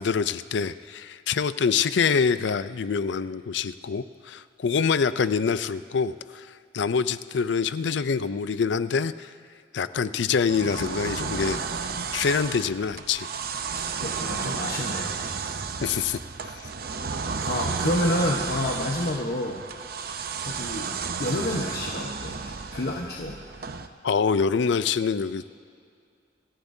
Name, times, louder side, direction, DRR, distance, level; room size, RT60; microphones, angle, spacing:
voice 1, 0.0-6.5 6.7-9.3 9.7-13.3 15.8-16.2 24.0-25.6, left 6 dB, 75° left, 14 dB, 0.4 m, -25 dB
sound 1, 10.5-23.9, right 5 dB, 55° right, 0.7 m, -32 dB
voice 2, 13.7-15.2 17.0-19.6 20.4-20.9 21.2-23.4, left 1 dB, 55° left, -1 dB, 1.1 m, -29 dB
26.0 x 14.0 x 2.7 m, 2.3 s
head